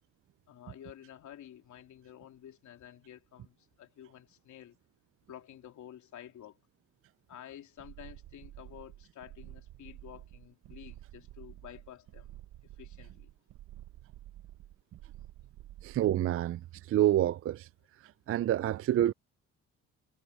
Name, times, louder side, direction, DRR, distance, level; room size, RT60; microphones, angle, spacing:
voice 1, 0.5-4.8 5.3-6.6 7.3-12.3 12.8-13.3, left 11 dB, 70° left, 3.5 m, -51 dB
sound 1, 7.8-16.2, right 14 dB, 90° right, 1.2 m, -50 dB
voice 2, 15.8-16.6 16.9-17.7 18.3-19.1, right 12 dB, 50° right, 0.4 m, -27 dB
cardioid pair, 90°, 30 cm